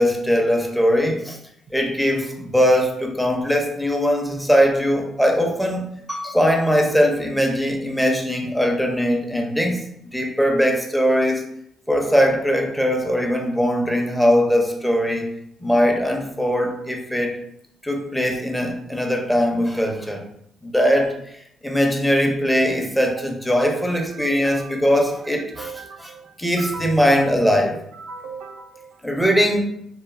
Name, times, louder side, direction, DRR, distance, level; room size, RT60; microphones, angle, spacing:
voice 1, 0.0-1.4 1.7-9.9 10.1-11.4 11.9-15.3 15.6-17.4 17.8-20.2 20.6-21.1 21.6-25.7 26.0-26.1 26.4-27.8 29.0-29.7, equal, 5° left, 2 dB, 0.5 m, -20 dB
voice 2, 23.9-24.7 25.5-27.3 27.9-29.0, right 4 dB, 80° right, 4 dB, 0.4 m, -38 dB
3.0 x 2.2 x 2.5 m, 0.72 s
cardioid pair, 90°, 0 cm